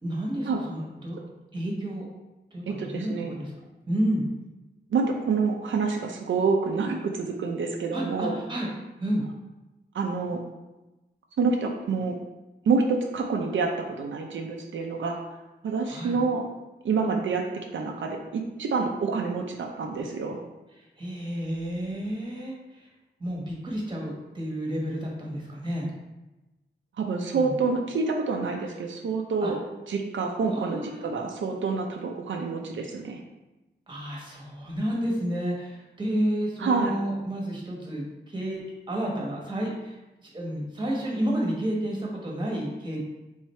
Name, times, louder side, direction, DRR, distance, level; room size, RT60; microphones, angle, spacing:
voice 1, 0.0-1.2 1.5-2.1 2.5-3.5 3.9-4.3 7.9-8.7 9.0-9.2 15.8-16.2 20.8-22.9 23.2-25.9 27.3-27.6 29.4-29.5 30.5-31.1 33.9-38.6 38.9-43.0, equal, 25° right, -2 dB, 1.1 m, -31 dB
voice 2, 2.7-3.4 4.9-8.4 9.9-10.4 11.4-12.2 12.7-15.2 15.6-16.4 16.8-17.5 17.7-20.4 27.0-29.6 29.9-33.2 36.6-36.9, right 4 dB, 85° right, 2 dB, 0.5 m, -27 dB
3.5 x 3.3 x 4.2 m, 1.1 s
wide cardioid pair, 135°, 19 cm